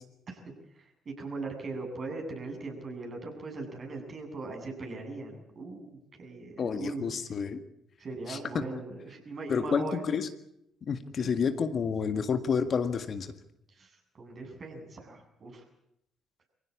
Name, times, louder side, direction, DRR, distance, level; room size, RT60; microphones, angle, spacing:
voice 1, 0.8-7.1 8.0-10.0 11.2-11.3 13.7-15.6, right 3 dB, 45° right, 2 dB, 7.9 m, -40 dB
voice 2, 6.6-7.6 8.3-8.6 9.5-10.3 10.8-13.3, left 6 dB, 50° left, 9 dB, 1.8 m, -29 dB
25.0 x 16.5 x 8.6 m, 0.78 s
hypercardioid pair, 50°, 0 cm